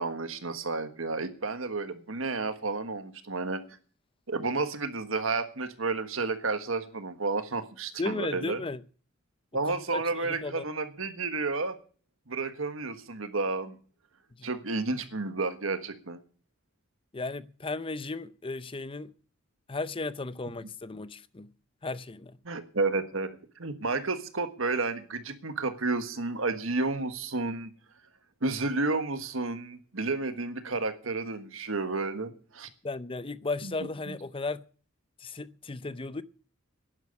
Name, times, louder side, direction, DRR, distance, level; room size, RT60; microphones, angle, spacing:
voice 1, 0.0-3.6 4.3-8.6 9.5-11.8 12.3-13.8 14.4-16.2 22.4-27.7 28.4-32.7 33.6-33.7 34.1-34.2, right 3 dB, 75° right, 1.5 m, -31 dB
voice 2, 8.0-8.8 9.6-10.6 14.4-14.5 17.1-19.1 19.7-21.5 21.8-22.4 32.8-34.6 35.2-36.2, left 3 dB, 25° left, 0.6 m, -35 dB
11.0 x 10.5 x 8.3 m
head